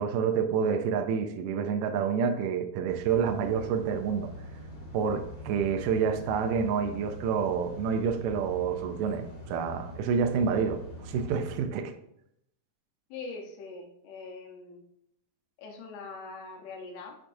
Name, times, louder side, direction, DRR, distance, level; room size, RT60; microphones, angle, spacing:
voice 1, 0.0-4.3 4.9-11.9, right 6 dB, 85° right, 1.9 m, -28 dB
sound 1, 2.9-11.6, left 1 dB, 35° left, 2.5 m, -43 dB
voice 2, 13.1-14.8 15.6-17.2, left 3 dB, 90° left, 3.1 m, -42 dB
8.5 x 6.0 x 2.6 m
omnidirectional pair, 4.4 m